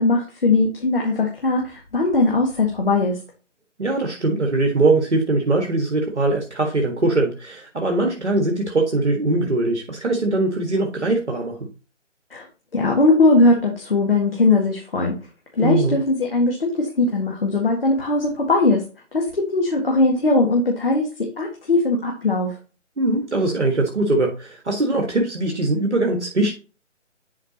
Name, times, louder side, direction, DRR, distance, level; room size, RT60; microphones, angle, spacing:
voice 1, 0.0-3.2 12.3-12.4 12.7-15.2 15.5-18.8 19.1-22.5, left 2 dB, 50° left, 0 dB, 1.8 m, -19 dB
voice 2, 3.8-11.6 15.6-16.0 23.0-26.5, right 2 dB, 65° right, 2 dB, 1.7 m, -21 dB
10.5 x 5.0 x 2.9 m, 0.34 s
figure-of-eight pair, 155°, 38 cm